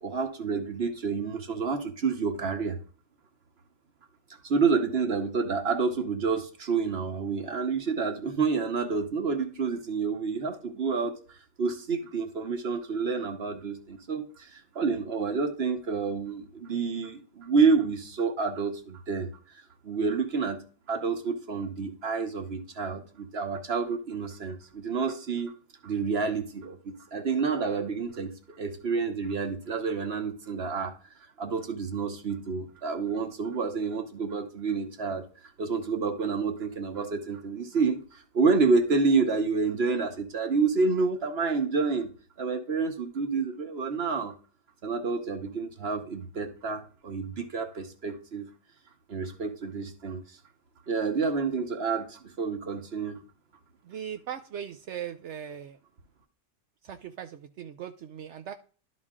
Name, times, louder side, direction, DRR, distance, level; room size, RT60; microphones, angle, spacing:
voice 1, 0.0-2.8 4.4-19.3 19.8-20.6 20.9-25.5 25.8-30.9 31.4-35.3 35.6-42.1 42.4-44.3 44.8-48.5 49.1-50.4 50.9-53.2, right 4 dB, 45° right, 7 dB, 0.9 m, -29 dB
voice 2, 53.8-55.8 56.8-58.5, right 9 dB, 80° right, 7 dB, 0.6 m, -39 dB
12.0 x 4.1 x 3.7 m, 0.39 s
omnidirectional pair, 1.8 m